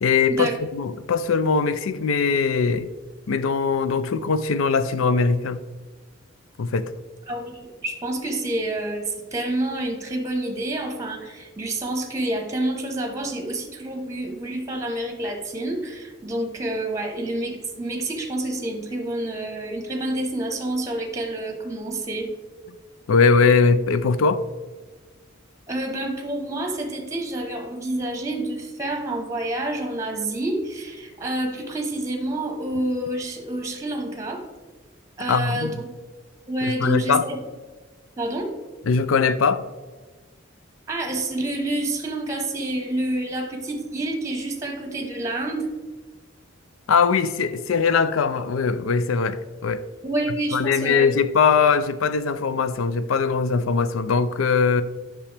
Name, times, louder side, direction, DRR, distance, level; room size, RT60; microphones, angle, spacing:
voice 1, 0.0-2.9 3.3-5.6 6.6-6.9 23.1-24.4 35.3-35.7 36.6-37.2 38.9-39.6 46.9-49.8 50.5-54.8, left 5 dB, 80° left, 0.4 m, -21 dB
voice 2, 7.3-22.3 25.7-34.4 35.2-35.8 36.5-37.4 38.2-38.5 40.9-45.7 50.0-51.1, right 1 dB, 15° right, 1.0 m, -28 dB
8.4 x 6.1 x 3.3 m
head